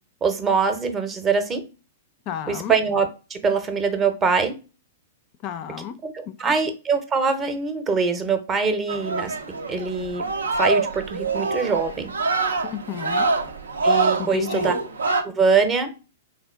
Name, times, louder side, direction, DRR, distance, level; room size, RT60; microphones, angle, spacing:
voice 1, 0.2-1.6 2.5-4.6 6.0-9.3 9.7-10.3 10.6-12.1 13.8-14.8 15.2-15.9, right 5 dB, 25° right, 0.6 m, -23 dB
voice 2, 2.3-2.7 5.4-5.9 6.3-6.5 12.6-13.3 14.2-14.7, left 10 dB, 40° left, 0.4 m, -32 dB
sound 1, 8.9-15.2, right 3 dB, 85° right, 0.5 m, -25 dB
3.4 x 2.4 x 3.3 m
hypercardioid pair, 115°, 0 cm